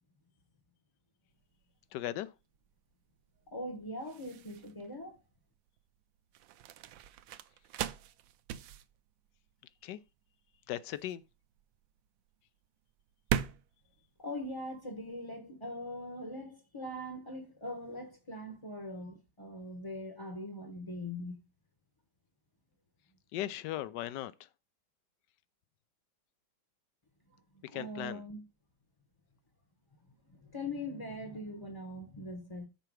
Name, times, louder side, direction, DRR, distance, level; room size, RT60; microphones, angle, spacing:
sound 1, 1.3-15.2, right 10 dB, 75° right, 1.2 m, -41 dB
voice 1, 1.9-2.3 9.8-10.0 10.7-11.2 23.3-24.3 27.7-28.2, left 13 dB, 75° left, 1.1 m, -37 dB
voice 2, 3.5-5.1 14.2-21.3 27.5-28.4 30.3-32.7, left 1 dB, 20° left, 0.8 m, -41 dB
6.9 x 4.5 x 6.1 m
omnidirectional pair, 2.2 m